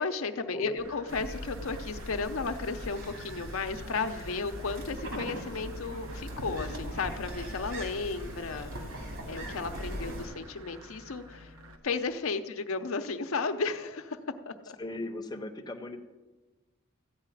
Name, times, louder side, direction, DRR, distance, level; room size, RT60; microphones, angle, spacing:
voice 1, 0.0-8.7 9.3-11.5 11.8-14.2 14.5-14.8, left 4 dB, 75° left, 7 dB, 0.7 m, -34 dB
sound 1, 0.8-11.8, right 1 dB, 90° right, 1.2 m, -51 dB
sound 2, 1.1-10.3, equal, 65° right, 2.6 m, -40 dB
voice 2, 14.8-16.0, left 2 dB, 20° left, 4 dB, 0.7 m, -37 dB
14.0 x 4.8 x 9.1 m, 1.2 s
head